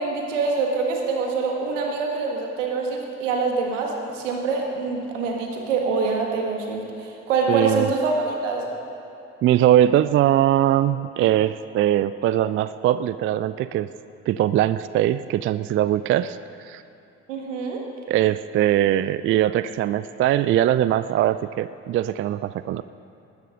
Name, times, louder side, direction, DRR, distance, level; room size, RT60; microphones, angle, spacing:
voice 1, 0.0-8.6 17.3-17.8, right 4 dB, 75° right, 1 dB, 1.7 m, -25 dB
voice 2, 7.5-7.9 9.4-13.9 14.3-16.8 18.1-22.8, right 12 dB, 35° right, 14 dB, 0.4 m, -21 dB
20.0 x 10.5 x 3.8 m, 2.8 s
figure-of-eight pair, 45°, 37 cm